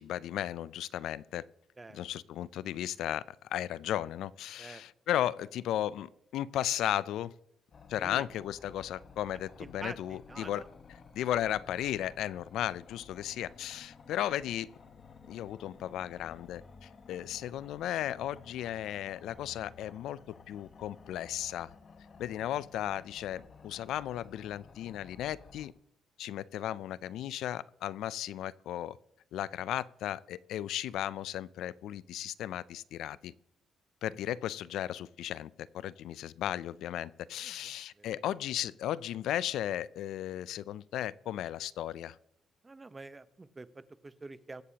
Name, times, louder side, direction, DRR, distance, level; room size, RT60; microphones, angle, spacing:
voice 1, 0.0-1.4 1.9-7.3 7.9-10.6 11.1-14.7 15.3-20.2 20.5-21.7 22.2-25.7 26.2-29.0 29.3-33.3 34.0-42.2, left 12 dB, 80° left, 19 dB, 0.3 m, -35 dB
sound 1, 7.7-25.7, left 5 dB, 45° left, 1.1 m, -54 dB
voice 2, 9.6-10.7 37.4-37.6 38.0-38.2 42.6-44.6, right 3 dB, 20° right, 13 dB, 0.7 m, -47 dB
22.5 x 8.3 x 2.9 m, 0.76 s
cardioid pair, 90°, 0 cm